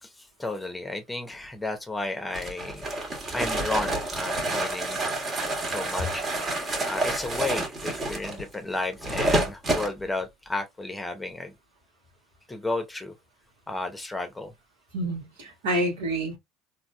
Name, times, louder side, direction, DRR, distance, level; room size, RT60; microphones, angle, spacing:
voice 1, 0.0-2.9 3.3-5.0 5.7-6.2 6.9-11.5 12.5-13.1 13.7-14.5, left 2 dB, 10° left, 0.9 m, -33 dB
sound 1, 2.3-9.9, right 2 dB, 35° right, 1.6 m, -28 dB
voice 2, 14.9-16.4, right 1 dB, 75° right, 1.6 m, -28 dB
3.9 x 2.9 x 2.2 m
hypercardioid pair, 65°, 0 cm